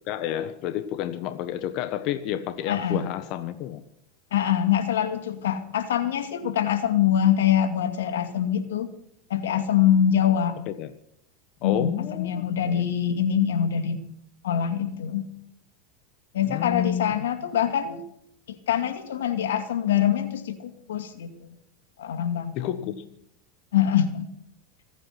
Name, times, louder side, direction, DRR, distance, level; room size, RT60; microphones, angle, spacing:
voice 1, 0.1-3.8 10.7-10.9 11.6-12.9 16.5-17.2 22.5-22.9, left 11 dB, 55° left, 1.3 m, -30 dB
voice 2, 2.7-3.1 4.3-8.9 9.3-10.6 11.6-14.0 14.4-15.3 16.3-18.0 18.5-21.3 22.0-22.5 23.7-24.3, left 9 dB, 85° left, 2.3 m, -24 dB
26.0 x 9.0 x 5.8 m
hypercardioid pair, 110°, 0 cm